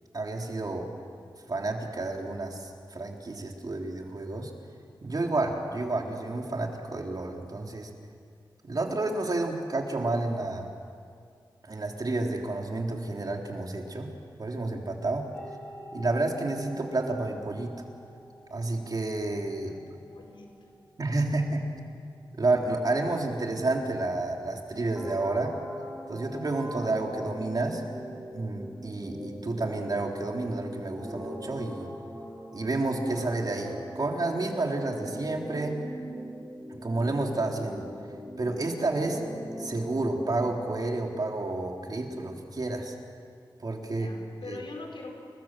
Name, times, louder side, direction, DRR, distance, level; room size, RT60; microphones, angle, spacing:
voice 1, 0.1-0.9 1.5-4.5 5.0-7.9 8.6-10.7 11.6-14.1 14.4-15.3 15.9-17.7 18.5-19.7 21.0-21.7 22.4-25.5 26.1-27.8 28.3-31.9 32.5-35.8 36.7-37.8 38.4-39.2 39.6-43.0 43.6-44.1 44.5-44.6, right 2 dB, 50° right, 1 dB, 3.5 m, -30 dB
sound 1, 15.3-30.1, equal, 20° left, 4.8 m, -52 dB
voice 2, 19.6-20.5 43.9-45.2, left 3 dB, 80° left, 1 dB, 5.4 m, -43 dB
sound 2, 25.0-41.0, equal, 5° right, 7.3 m, -41 dB
29.0 x 21.0 x 7.6 m, 2.3 s
wide cardioid pair, 65°, 8 cm